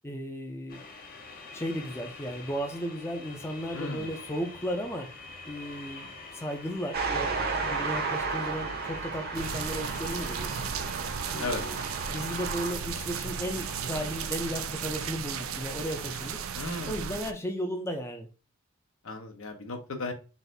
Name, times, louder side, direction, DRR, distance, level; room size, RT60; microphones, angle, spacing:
voice 1, 0.0-0.8 1.5-5.1 5.5-7.3 7.6-10.6 11.3-16.4 16.9-18.3, equal, 10° left, 3 dB, 0.5 m, -35 dB
sound 1, 0.7-16.5, left 3 dB, 45° left, 0.8 m, -46 dB
voice 2, 3.7-4.1 11.3-11.6 16.5-17.1 19.0-20.1, left 2 dB, 70° left, 5 dB, 1.0 m, -35 dB
sound 2, 6.9-12.7, right 4 dB, 50° right, 0.8 m, -33 dB
sound 3, 9.3-17.3, right 7 dB, 75° right, 0.5 m, -35 dB
4.0 x 2.6 x 3.9 m, 0.33 s
head